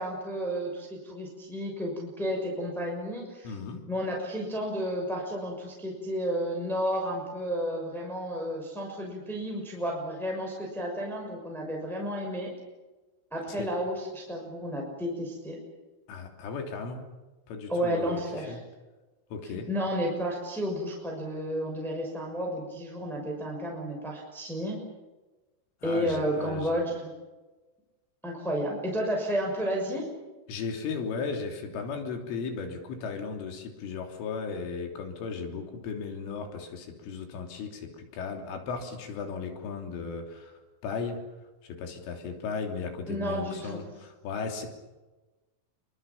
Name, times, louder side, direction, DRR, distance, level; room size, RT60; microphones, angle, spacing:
voice 1, 0.0-3.5 3.9-12.5 13.3-15.6 17.7-18.6 19.4-24.8 25.8-27.1 28.2-30.1 43.1-43.8, equal, ahead, 0 dB, 5.6 m, -32 dB
voice 2, 3.5-3.8 13.5-13.7 16.1-17.0 17.5-18.6 19.3-19.7 25.8-26.8 30.5-41.2 41.8-44.7, left 5 dB, 80° left, 3 dB, 5.7 m, -36 dB
27.0 x 24.0 x 7.3 m, 1.2 s
omnidirectional pair, 5.6 m